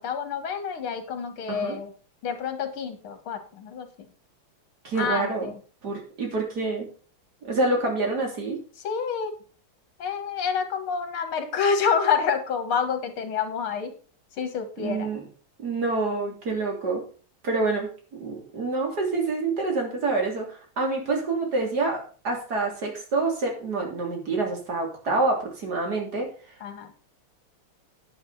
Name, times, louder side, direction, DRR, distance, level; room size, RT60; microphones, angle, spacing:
voice 1, 0.0-1.9 2.2-3.9 5.0-5.6 8.8-9.3 10.0-13.9 14.4-15.1 26.6-26.9, left 6 dB, 75° left, 8 dB, 2.4 m, -28 dB
voice 2, 4.8-5.5 5.8-6.9 7.4-8.6 14.8-15.2 15.6-17.1 17.4-17.9 18.2-26.3, right 3 dB, 45° right, 1 dB, 3.6 m, -27 dB
9.8 x 9.5 x 4.2 m, 0.39 s
omnidirectional pair, 2.4 m